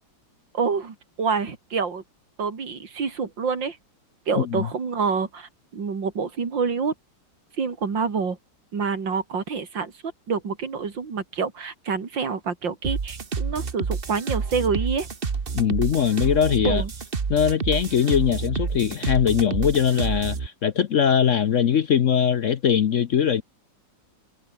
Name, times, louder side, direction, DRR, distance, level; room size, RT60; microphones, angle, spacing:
voice 1, 0.5-2.0 2.4-3.8 4.3-6.9 7.6-8.4 8.7-9.9 10.3-15.1 16.6-16.9, right 5 dB, 85° right, 3.4 m, -27 dB
voice 2, 4.4-4.7 15.5-16.8 17.3-23.4, left 8 dB, 55° left, 0.9 m, -21 dB
sound 1, 12.8-20.5, right 5 dB, 35° right, 1.4 m, -29 dB
omnidirectional pair, 2.0 m